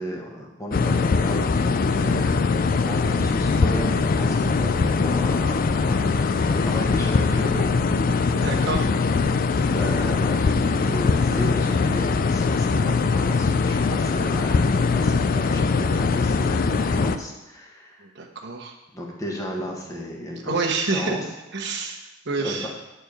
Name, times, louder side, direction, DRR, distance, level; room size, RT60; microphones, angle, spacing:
voice 1, 0.0-2.4 2.8-7.7 9.6-18.1 18.9-20.6 20.9-21.3 21.8-21.9 22.4-22.8, equal, 15° left, -1 dB, 1.4 m, -34 dB
sound 1, 0.7-17.2, left 4 dB, 45° left, 0.4 m, -21 dB
voice 2, 8.1-8.9 18.0-18.7 20.4-21.2 21.5-22.0 22.2-22.7, right 4 dB, 60° right, 1 dB, 1.3 m, -28 dB
9.1 x 4.5 x 6.6 m, 1.0 s
head